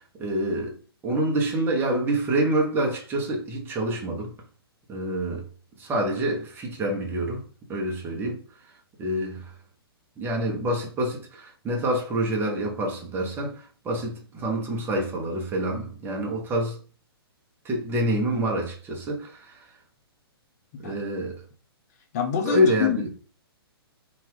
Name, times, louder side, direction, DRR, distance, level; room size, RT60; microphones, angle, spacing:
voice 1, 0.2-0.8 1.0-4.3 4.9-5.4 5.8-7.4 7.7-8.4 9.0-9.5 10.2-16.8 17.6-19.7 20.8-21.4 22.4-23.0, right 1 dB, 15° right, 0.8 m, -27 dB
voice 2, 22.1-23.1, left 8 dB, 40° left, 0.6 m, -26 dB
2.9 x 2.5 x 3.4 m
figure-of-eight pair, 125°, 13 cm